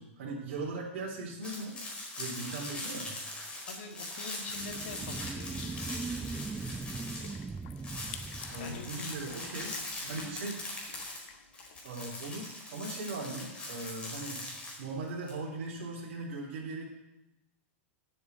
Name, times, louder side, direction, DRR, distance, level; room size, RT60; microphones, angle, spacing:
voice 1, 0.0-1.8 2.2-3.1 8.5-9.8 10.1-10.6 11.8-14.4 14.8-16.8, right 3 dB, 70° right, -2 dB, 3.4 m, -39 dB
sound 1, 1.4-7.5 7.8-15.3, left 2 dB, 15° left, 4.7 m, -41 dB
voice 2, 3.7-5.8 8.6-9.1 10.0-10.3, left 3 dB, 75° left, 3 dB, 2.0 m, -44 dB
sound 2, 4.5-9.5, right 4 dB, 15° right, 0.7 m, -40 dB
sound 3, 5.6-12.2, left 10 dB, 60° left, 1.2 m, -53 dB
10.0 x 8.0 x 8.3 m, 0.90 s
hypercardioid pair, 120°, 7 cm